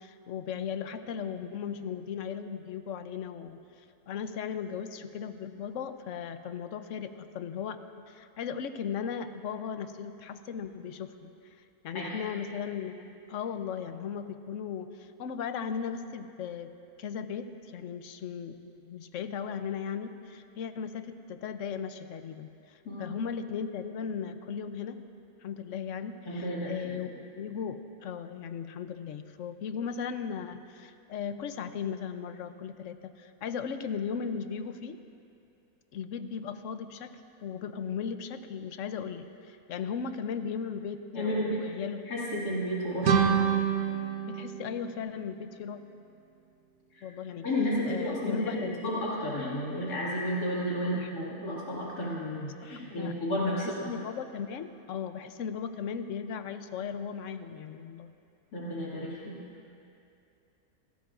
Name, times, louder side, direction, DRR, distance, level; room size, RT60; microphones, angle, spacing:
voice 1, 0.0-11.3 11.8-16.7 17.0-25.0 25.4-35.0 35.9-42.1 44.2-45.8 47.0-47.5 47.9-48.9 50.9-51.1 52.6-53.1 53.6-58.1, left 7 dB, 60° left, 9 dB, 1.0 m, -37 dB
voice 2, 11.9-12.2 22.8-23.1 26.3-27.1 41.1-41.6 42.1-43.3 46.9-47.1 47.4-53.9 58.5-59.4, equal, 85° left, -7 dB, 2.9 m, -32 dB
sound 1, 43.0-45.8, right 8 dB, 80° right, 1.4 m, -28 dB
27.0 x 18.0 x 2.5 m, 2.6 s
omnidirectional pair, 1.6 m